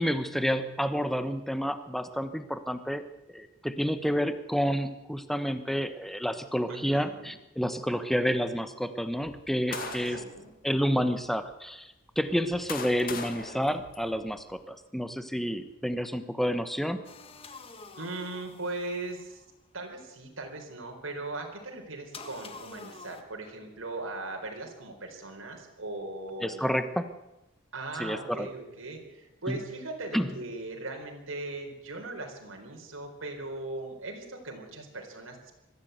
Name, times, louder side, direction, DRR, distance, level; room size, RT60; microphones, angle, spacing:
voice 1, 0.0-3.0 3.3-10.2 10.6-17.0 26.4-27.1 28.0-28.5 29.5-29.6 30.1-30.3, equal, ahead, 10 dB, 1.1 m, -29 dB
voice 2, 6.7-7.3 9.7-10.5 18.0-19.4 19.7-26.6 27.7-35.5, right 2 dB, 85° right, 1 dB, 4.2 m, -39 dB
sound 1, 9.2-10.4 11.1-11.3 12.2-14.5, left 5 dB, 45° left, 2.0 m, -40 dB
sound 2, 17.0-19.5 22.1-23.2, left 4 dB, 30° left, 1.8 m, -48 dB
22.5 x 14.5 x 8.2 m, 0.96 s
head